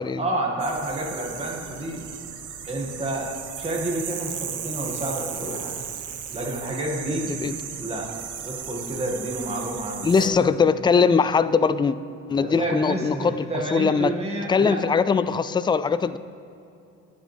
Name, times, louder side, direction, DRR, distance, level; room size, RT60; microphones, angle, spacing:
voice 1, 0.2-2.0 2.7-5.8 6.3-7.3 7.8-8.1 8.4-10.5 12.4-14.9, right 1 dB, 20° right, 2.2 m, -29 dB
sound 1, 0.6-10.3, right 8 dB, 80° right, 1.1 m, -36 dB
voice 2, 10.0-12.0 12.3-13.4 13.7-14.1 14.5-16.2, left 5 dB, 15° left, 0.3 m, -21 dB
20.5 x 7.5 x 3.5 m
cardioid pair, 90°, 30 cm